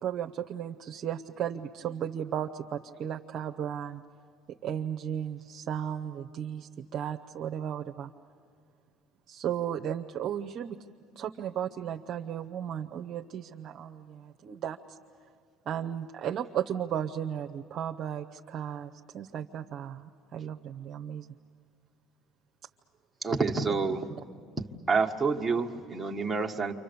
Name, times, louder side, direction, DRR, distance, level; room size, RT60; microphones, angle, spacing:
voice 1, 0.0-4.0 4.6-8.1 9.3-10.8 11.2-15.0 15.7-21.3, right 9 dB, 50° right, 4 dB, 0.7 m, -35 dB
voice 2, 23.2-24.1 24.9-26.7, right 4 dB, 10° right, 0 dB, 1.5 m, -28 dB
29.0 x 25.5 x 6.9 m, 2.3 s
supercardioid pair, 95°, 0 cm